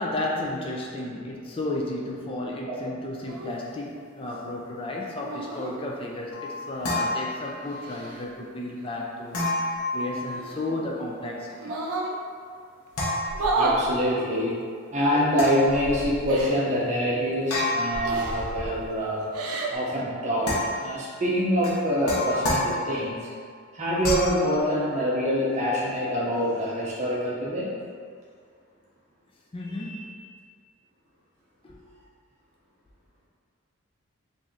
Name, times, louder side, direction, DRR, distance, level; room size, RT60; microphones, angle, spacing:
voice 1, 0.0-11.7 29.5-30.3 31.6-31.8, left 1 dB, 25° left, -2 dB, 0.4 m, -33 dB
sound 1, 3.3-3.5 5.2-5.8 7.1-8.2 10.3-11.0 11.6-12.1 13.3-13.8 15.1-15.2 16.3-16.6 18.0-18.5 19.2-19.8, right 3 dB, 90° right, 0.5 m, -30 dB
sound 2, 6.3-7.9 9.3-10.7 12.9-14.0 15.3-16.4 17.5-18.9 20.4-21.1 21.6-23.2 24.0-24.5, left 1 dB, 80° left, 0.8 m, -30 dB
voice 2, 13.5-14.6 14.9-19.3 19.7-23.3 23.7-27.7, equal, 30° right, -6 dB, 0.7 m, -25 dB
3.1 x 2.6 x 3.6 m, 2.1 s
head